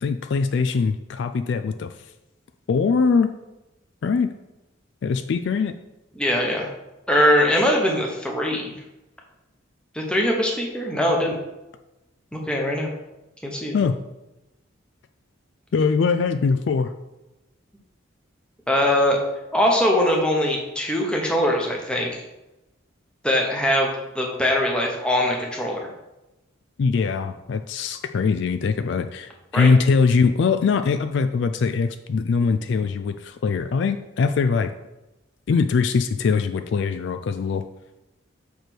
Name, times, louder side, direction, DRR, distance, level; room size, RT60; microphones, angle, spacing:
voice 1, 0.0-1.9 2.7-3.3 4.0-4.3 5.0-5.7 13.7-14.0 15.7-16.9 26.8-34.7 35.5-37.6, left 5 dB, 60° left, 9 dB, 0.3 m, -22 dB
voice 2, 6.1-6.7 7.1-8.7 9.9-11.4 12.3-12.9 13.4-13.7 18.7-19.2 19.5-22.2 23.2-25.8 29.5-29.7, left 1 dB, 5° left, -1 dB, 1.1 m, -22 dB
6.7 x 3.4 x 6.1 m, 0.99 s
head